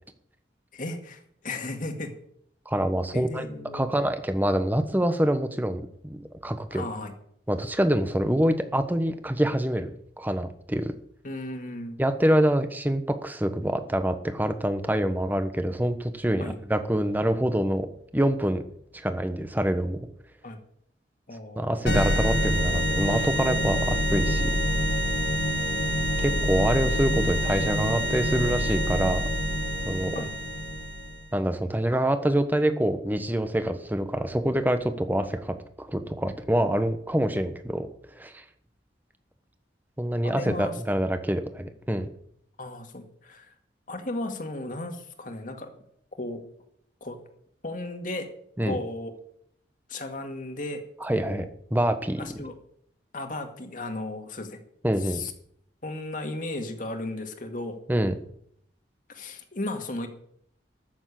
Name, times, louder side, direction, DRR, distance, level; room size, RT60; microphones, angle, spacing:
voice 1, 0.7-2.2 3.1-4.1 6.7-7.1 11.2-12.0 16.4-16.6 20.4-20.6 21.3-22.0 30.1-30.3 40.2-40.8 42.6-43.5 43.9-45.7 46.2-46.4 47.0-47.2 47.6-48.3 48.6-49.1 49.9-51.5 52.2-52.5 53.1-54.6 55.0-55.3 55.8-57.8 59.1-60.1, left 2 dB, 50° left, 4 dB, 2.1 m, -35 dB
voice 2, 2.7-3.5 3.7-6.8 7.5-9.9 10.2-10.9 12.0-17.9 18.1-18.6 18.9-20.0 21.6-24.6 26.2-29.3 29.9-30.1 31.3-37.9 38.1-38.4 40.0-42.1 48.6-48.8 51.0-51.4 51.7-52.2 54.8-55.2 57.9-58.1, right 1 dB, 10° right, 9 dB, 1.1 m, -26 dB
sound 1, 21.9-31.3, equal, 70° left, 2.0 m, -26 dB
14.0 x 7.2 x 8.5 m, 0.68 s
head